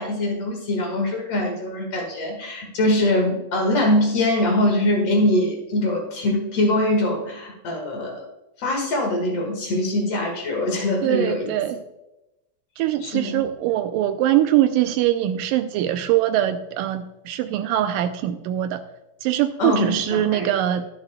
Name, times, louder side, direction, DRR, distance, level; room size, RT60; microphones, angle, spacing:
voice 1, 0.0-8.3 8.6-11.5 13.0-13.4 19.6-20.5, left 1 dB, 50° left, 1 dB, 2.4 m, -23 dB
voice 2, 11.0-11.8 12.8-18.8 19.2-20.9, right 12 dB, 80° right, 9 dB, 2.1 m, -22 dB
22.0 x 7.5 x 2.2 m, 0.92 s
omnidirectional pair, 4.1 m